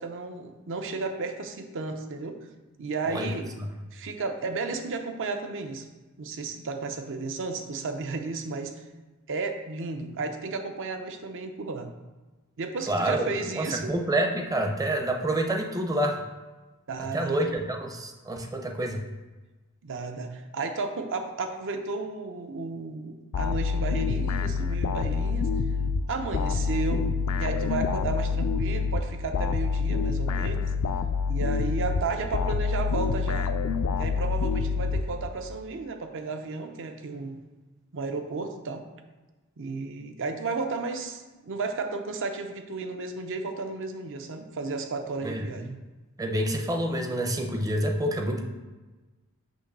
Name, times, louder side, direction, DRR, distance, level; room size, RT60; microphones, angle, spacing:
voice 1, 0.0-2.4 2.8-3.5 3.9-5.9 6.2-8.8 9.3-11.9 12.6-13.9 16.9-17.5 19.8-25.5 26.1-27.1 27.4-30.7 31.3-33.5 34.0-37.4 37.9-38.9 39.6-45.8, right 4 dB, 60° right, 6 dB, 0.6 m, -33 dB
voice 2, 12.9-16.2 17.1-19.0 45.2-45.4 46.2-48.4, right 1 dB, 15° right, 3 dB, 0.6 m, -27 dB
sound 1, 23.3-35.5, left 5 dB, 80° left, 0.4 m, -27 dB
6.3 x 3.0 x 5.3 m, 1.2 s
head